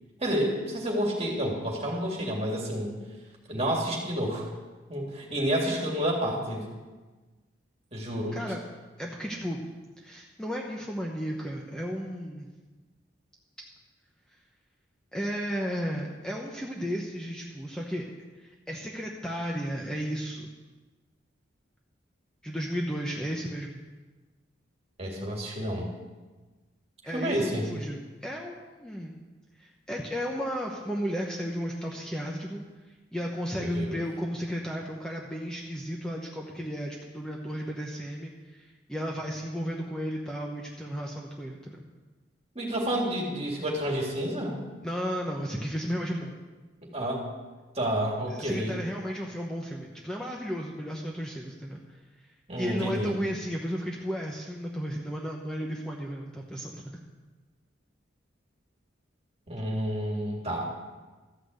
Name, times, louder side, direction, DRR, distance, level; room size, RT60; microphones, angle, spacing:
voice 1, 0.2-2.9 3.5-4.5 4.9-6.7 7.9-8.4 25.0-25.9 27.0-27.7 33.5-34.0 42.6-44.6 46.8-47.3 47.8-48.7 52.5-53.1 59.5-60.7, equal, 30° right, -1 dB, 2.3 m, -29 dB
voice 2, 9.0-9.6 10.0-12.5 15.1-18.1 18.3-20.5 22.4-23.8 27.0-29.2 29.6-32.6 33.1-41.8 44.8-46.3 48.3-52.0 52.6-56.9, equal, 5° left, -2 dB, 0.9 m, -34 dB
13.0 x 6.0 x 7.8 m, 1.3 s
head